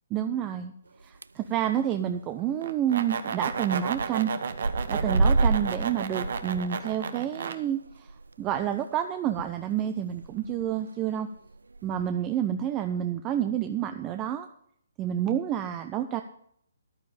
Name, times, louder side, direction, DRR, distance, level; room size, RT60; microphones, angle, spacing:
voice 1, 0.1-0.7 1.0-4.3 4.9-8.1 8.4-11.3 11.8-14.5 15.0-16.2, right 10 dB, 20° right, 7 dB, 0.7 m, -29 dB
sound 1, 1.0-1.5 1.8-2.1 2.4-2.5 2.7-2.8 3.5-4.1 4.4-9.5 9.8-9.9 10.2-10.7 11.3-12.0, right 3 dB, 75° right, 0.5 m, -29 dB
sound 2, 2.6-7.6, right 6 dB, 55° right, 1.2 m, -32 dB
14.0 x 11.5 x 3.4 m, 0.66 s
figure-of-eight pair, 135°, 0 cm